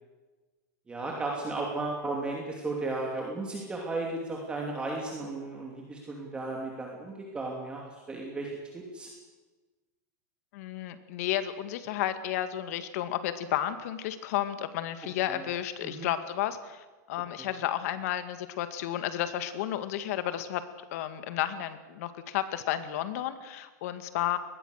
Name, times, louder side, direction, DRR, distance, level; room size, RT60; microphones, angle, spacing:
voice 1, 0.9-9.1 15.3-15.4 15.8-16.1 17.4-17.5, right 2 dB, 10° right, -1 dB, 2.9 m, -35 dB
voice 2, 10.5-20.6 20.9-24.4, left 12 dB, 55° left, 10 dB, 2.0 m, -32 dB
23.0 x 20.0 x 6.6 m, 1.2 s
supercardioid pair, 155°, 10 cm